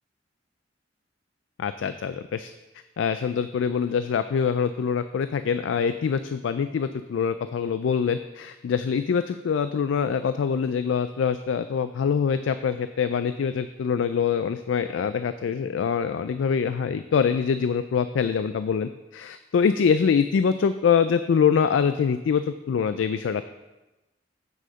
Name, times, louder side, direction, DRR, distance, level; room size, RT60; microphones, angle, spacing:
voice 1, 1.6-2.5 3.0-23.4, left 6 dB, 80° left, 11 dB, 0.3 m, -24 dB
7.7 x 6.4 x 5.1 m, 1.1 s
head